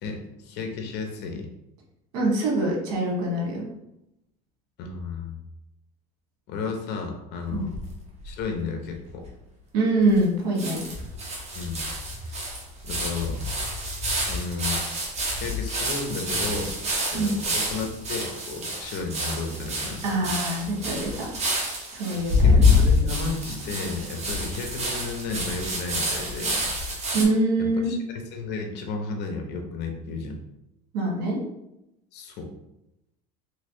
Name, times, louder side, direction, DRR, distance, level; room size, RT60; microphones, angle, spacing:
voice 1, 0.0-1.5 4.8-5.4 6.5-7.8 8.2-9.2 11.5-11.9 12.2-12.4 12.8-13.4 14.3-14.8 15.3-16.8 17.1-20.3 22.4-26.7 27.6-30.4 32.1-32.5, left 4 dB, 60° left, 3 dB, 0.8 m, -33 dB
voice 2, 2.1-3.6 7.5-7.7 9.7-10.8 17.1-17.3 20.0-21.3 21.9-22.9 27.1-27.9 30.9-31.4, right 2 dB, 75° right, -1 dB, 1.3 m, -24 dB
sound 1, 7.5-8.4 8.9-9.0 9.2-9.3 10.2-10.3 10.6-27.2, left 2 dB, 35° right, 1.1 m, -27 dB
3.2 x 3.1 x 2.7 m, 0.87 s
supercardioid pair, 100°, 20 cm